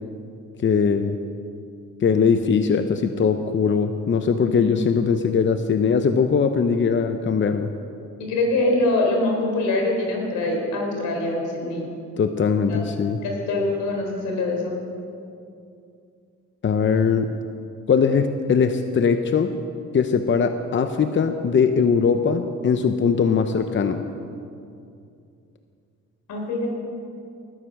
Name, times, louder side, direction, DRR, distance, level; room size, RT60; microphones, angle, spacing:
voice 1, 0.6-1.2 2.0-7.7 12.2-13.2 16.6-17.3 17.9-19.5 19.9-24.0, left 6 dB, 40° left, 8 dB, 0.8 m, -20 dB
voice 2, 4.4-4.8 8.2-11.9 12.7-12.8 13.2-14.8 26.3-26.7, left 2 dB, 85° left, 1 dB, 4.1 m, -24 dB
20.0 x 9.9 x 6.4 m, 2.5 s
cardioid pair, 90°, 30 cm